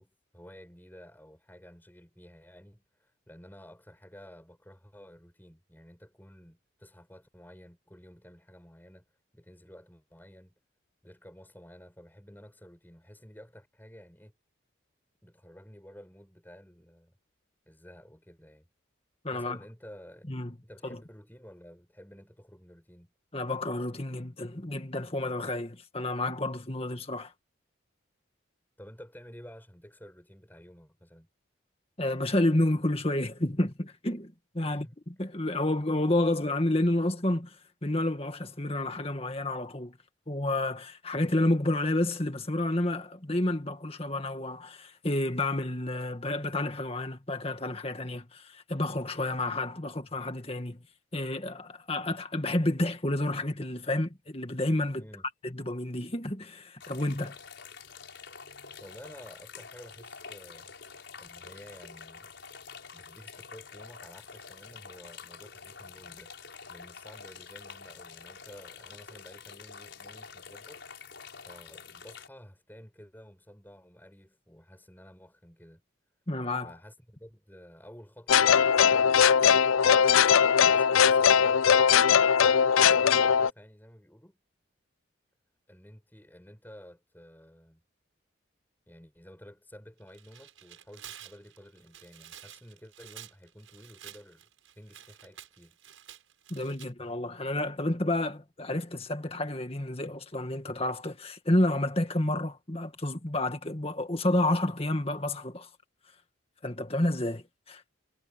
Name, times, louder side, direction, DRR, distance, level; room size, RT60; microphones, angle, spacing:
voice 1, 0.0-9.1 9.3-10.5 11.0-14.3 15.2-17.2 17.7-18.7 19.3-23.1 28.8-31.3 34.6-34.9 54.9-55.3 58.8-60.8 61.2-62.3 62.9-70.8 71.4-75.8 76.6-79.6 80.2-81.9 82.5-84.4 85.7-87.8 88.9-94.5 94.7-95.8, equal, 10° left, 6.8 m, -52 dB
voice 2, 19.2-19.6 20.3-20.5 20.8-21.0 23.3-27.3 32.0-34.9 35.2-37.6 37.8-40.0 40.3-50.8 51.1-55.0 55.4-57.4 76.3-76.7 96.5-105.7 106.6-107.8, left 1 dB, 30° left, 2.0 m, -30 dB
sound 1, 56.8-72.3, left 6 dB, 60° left, 5.7 m, -47 dB
sound 2, 78.3-83.5, left 7 dB, 90° left, 0.4 m, -20 dB
Tearing, 90.0-96.9, right 11 dB, 80° right, 7.6 m, -50 dB
head